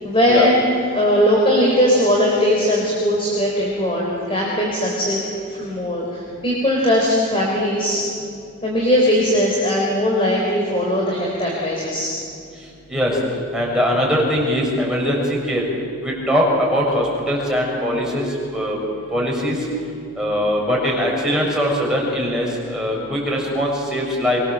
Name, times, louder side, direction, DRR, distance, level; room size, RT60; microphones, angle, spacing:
voice 1, 0.0-5.2 5.5-8.0 8.6-12.1, equal, 25° left, -2 dB, 3.9 m, -19 dB
voice 2, 12.9-13.2 13.5-15.7 16.0-18.8 19.1-19.7 20.1-24.4, equal, 5° right, -3 dB, 6.6 m, -21 dB
24.0 x 22.5 x 7.4 m, 2.5 s
head